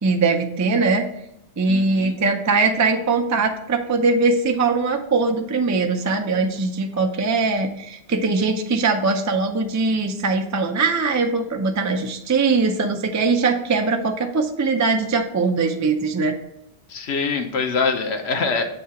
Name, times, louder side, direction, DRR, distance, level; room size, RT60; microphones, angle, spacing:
voice 1, 0.0-1.0 1.6-16.4, right 4 dB, 25° right, 4 dB, 0.4 m, -21 dB
voice 2, 1.7-2.2 16.9-18.6, left 4 dB, 85° left, 4 dB, 1.1 m, -24 dB
7.7 x 2.8 x 5.7 m, 0.79 s
omnidirectional pair, 1.1 m